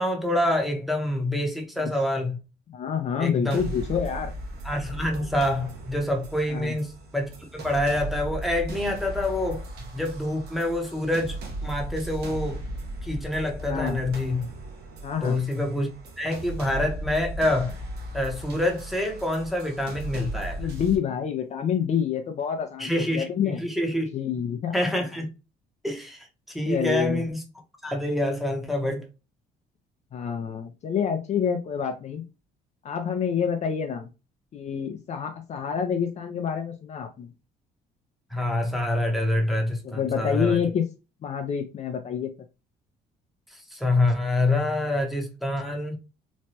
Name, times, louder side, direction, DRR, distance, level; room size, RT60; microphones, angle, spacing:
voice 1, 0.0-2.4 3.2-3.6 4.6-9.6 9.9-12.6 13.0-14.5 15.2-17.8 18.1-20.7 22.8-24.1 24.7-25.3 25.8-27.4 27.8-29.1 38.3-40.6 43.5-46.0, left 1 dB, ahead, 0.8 m, -26 dB
voice 2, 2.7-4.3 6.5-6.8 13.7-14.1 15.0-15.4 20.6-23.6 24.1-24.7 26.7-27.3 30.1-32.2 32.8-34.1 34.5-37.3 39.8-40.9 41.2-42.3, left 7 dB, 45° left, 0.4 m, -27 dB
sound 1, 3.5-21.0, right 1 dB, 75° right, 0.8 m, -37 dB
3.0 x 2.2 x 2.7 m
cardioid pair, 110°, 17 cm